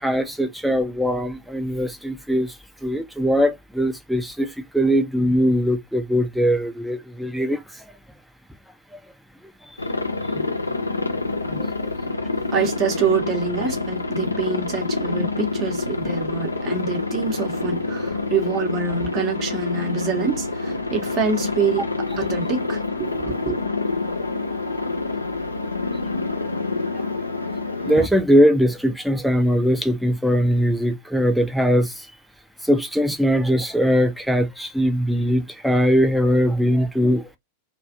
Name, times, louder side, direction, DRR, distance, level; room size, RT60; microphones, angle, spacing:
voice 1, 0.0-2.5 2.8-4.5 4.7-7.6 10.4-10.5 11.5-11.7 27.9-31.9 32.6-37.2, equal, ahead, 0.5 m, -20 dB
Aircraft, 9.8-28.1, left 3 dB, 80° left, 0.4 m, -27 dB
voice 2, 12.5-21.9 22.2-23.5, right 5 dB, 35° right, 0.9 m, -26 dB
2.4 x 2.3 x 2.5 m
figure-of-eight pair, 90°, 0 cm